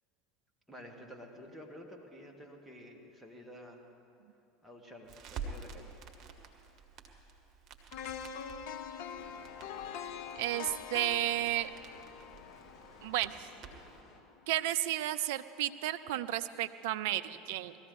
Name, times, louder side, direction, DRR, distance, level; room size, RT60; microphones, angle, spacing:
voice 1, 0.7-3.8 4.6-6.0, equal, 5° right, 0 dB, 2.2 m, -50 dB
Crackle, 5.1-14.0, right 5 dB, 40° right, 1.6 m, -49 dB
sound 1, 7.9-13.9 14.3-14.4, left 7 dB, 60° left, 0.6 m, -44 dB
sound 2, 9.2-14.2, left 3 dB, 35° left, 2.0 m, -57 dB
voice 2, 10.4-11.7 13.0-13.5 14.5-17.8, right 14 dB, 65° right, 12 dB, 0.5 m, -33 dB
19.5 x 14.5 x 4.2 m, 2.8 s
hypercardioid pair, 75°, 0 cm